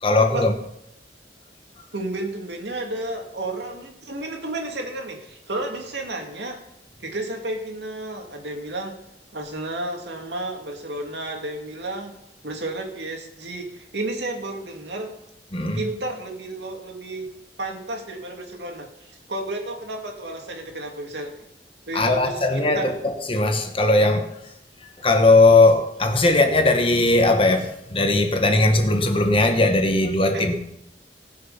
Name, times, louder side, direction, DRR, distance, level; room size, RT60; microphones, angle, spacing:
voice 1, 0.0-0.5 15.5-15.8 21.9-24.3 25.0-30.6, left 2 dB, 30° left, 1.3 m, -18 dB
voice 2, 1.9-6.6 7.0-9.0 9.3-12.2 12.4-15.1 15.7-17.3 17.6-21.4 21.9-23.0 30.3-30.6, right 2 dB, 75° right, 2.5 m, -32 dB
18.5 x 6.7 x 5.7 m
head